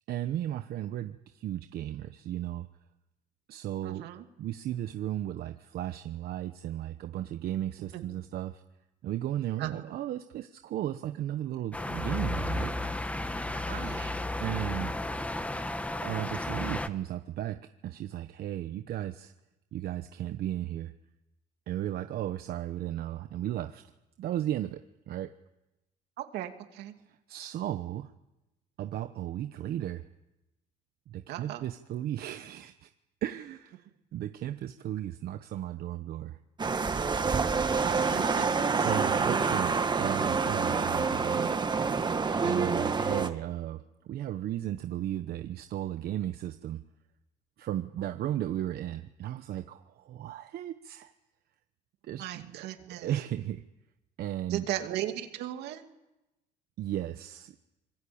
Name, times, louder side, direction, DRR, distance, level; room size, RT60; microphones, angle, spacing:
voice 1, 0.1-2.7 3.5-4.1 4.4-8.6 9.0-12.7 14.4-14.9 15.9-17.6 17.8-19.3 19.7-20.9 21.7-23.8 24.2-24.8 25.1-25.3 27.3-28.1 28.8-30.1 31.1-32.9 33.2-33.9 34.1-36.4 38.8-41.5 42.4-46.8 47.6-51.1 52.0-53.6 54.2-54.7 56.8-57.5, right 12 dB, 65° right, 8 dB, 1.1 m, -35 dB
voice 2, 3.8-4.2 7.9-8.0 9.6-9.8 13.6-14.2 26.2-26.9 31.3-31.7 37.8-38.9 52.2-53.1 54.5-55.8, right 12 dB, 85° right, 6 dB, 2.6 m, -37 dB
sound 1, 11.7-16.9, left 2 dB, 10° left, 1.3 m, -33 dB
sound 2, 36.6-43.3, right 4 dB, 25° right, 1.6 m, -27 dB
25.5 x 22.0 x 8.7 m, 0.98 s
cardioid pair, 110°, 17 cm